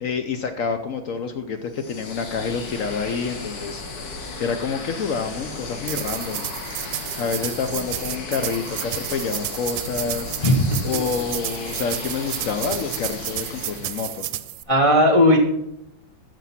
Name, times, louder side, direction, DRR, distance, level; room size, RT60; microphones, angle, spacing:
voice 1, 0.0-6.5 7.2-10.3 10.8-14.3, left 5 dB, 70° left, 8 dB, 0.7 m, -28 dB
sound 1, 1.7-14.4, left 3 dB, 55° left, 1.8 m, -35 dB
sound 2, 5.8-14.6, right 14 dB, 75° right, 1.2 m, -32 dB
voice 2, 10.4-11.0 14.7-15.4, left 1 dB, 25° left, 1 dB, 0.7 m, -17 dB
13.0 x 5.1 x 5.7 m, 0.84 s
omnidirectional pair, 2.2 m